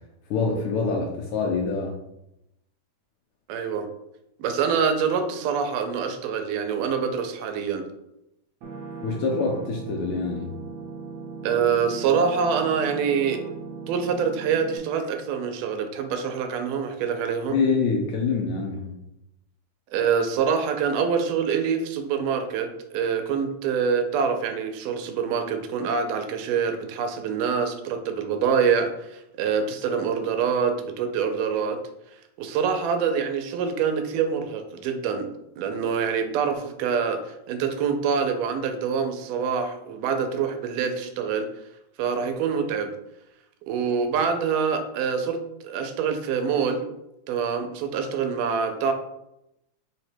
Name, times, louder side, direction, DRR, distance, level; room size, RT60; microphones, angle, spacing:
voice 1, 0.3-2.0 9.0-10.5 17.5-19.0, left 4 dB, 80° left, 0 dB, 1.7 m, -25 dB
voice 2, 3.5-3.9 4.4-7.9 11.4-13.4 13.9-17.6 19.9-31.8 32.4-35.3 35.6-41.5 42.0-42.9 43.7-46.9 47.3-48.9, right 6 dB, 85° right, 6 dB, 2.1 m, -25 dB
sound 1, 8.6-14.8, right 4 dB, 70° right, 1.8 m, -38 dB
5.1 x 2.1 x 4.3 m, 0.85 s
omnidirectional pair, 3.6 m